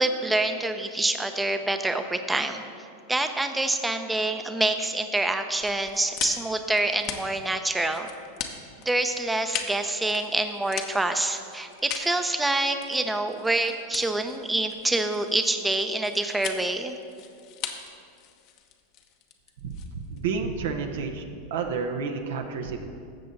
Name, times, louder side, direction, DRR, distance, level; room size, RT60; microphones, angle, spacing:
voice 1, 0.0-2.6 3.1-8.1 8.9-17.0, right 2 dB, 10° right, 7 dB, 0.7 m, -26 dB
sound 1, 5.6-20.3, left 8 dB, 50° left, 1.0 m, -39 dB
voice 2, 19.6-21.2 21.5-22.9, right 5 dB, 70° right, 5 dB, 0.9 m, -30 dB
13.0 x 7.5 x 4.0 m, 2.4 s
hypercardioid pair, 100°, 0 cm